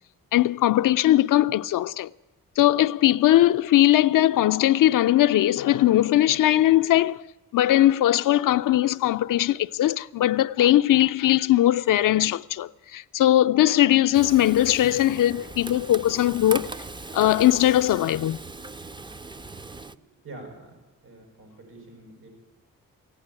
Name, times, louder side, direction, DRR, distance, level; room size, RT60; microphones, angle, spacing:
voice 1, 0.3-2.1 2.6-7.2 7.5-16.7 17.1-18.4, left 13 dB, 65° left, 0.5 m, -20 dB
Frying (food), 14.1-20.0, right 3 dB, 15° right, 0.5 m, -39 dB
voice 2, 19.7-20.7 21.0-22.3, right 2 dB, 85° right, 6.8 m, -46 dB
14.5 x 9.7 x 9.7 m
cardioid pair, 60°, 34 cm